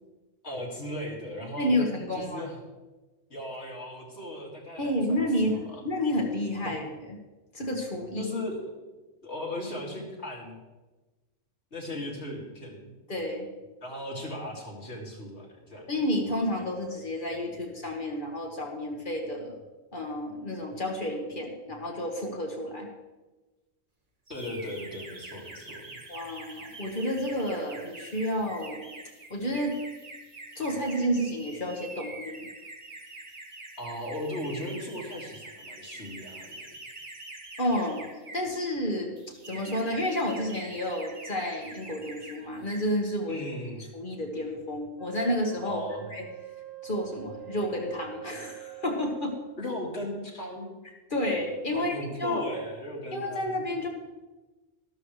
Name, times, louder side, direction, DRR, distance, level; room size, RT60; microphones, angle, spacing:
voice 1, 0.4-1.9 2.1-2.6 3.3-5.8 6.6-6.7 8.2-8.6 9.2-10.6 11.7-12.9 13.8-15.9 24.3-26.0 33.8-36.7 43.3-43.8 45.6-46.1 49.6-50.7 51.7-53.6, left 1 dB, 75° left, -2 dB, 2.7 m, -37 dB
voice 2, 1.6-2.5 4.8-7.2 7.5-8.3 13.1-13.5 15.9-19.6 19.9-22.9 26.1-28.8 29.3-29.8 30.6-32.5 37.6-38.1 38.3-39.2 39.5-43.4 43.9-45.8 46.1-46.3 46.8-49.4 51.1-51.9 52.2-52.4 53.1-53.9, left 1 dB, 45° left, 1 dB, 1.8 m, -30 dB
sound 1, 24.3-38.6 39.2-42.4 42.6-42.9, right 2 dB, 35° right, 1.5 m, -45 dB
Wind instrument woodwind instrument, 45.0-49.6, right 7 dB, 60° right, 3.2 m, -44 dB
13.0 x 13.0 x 3.3 m, 1.2 s
omnidirectional pair, 1.2 m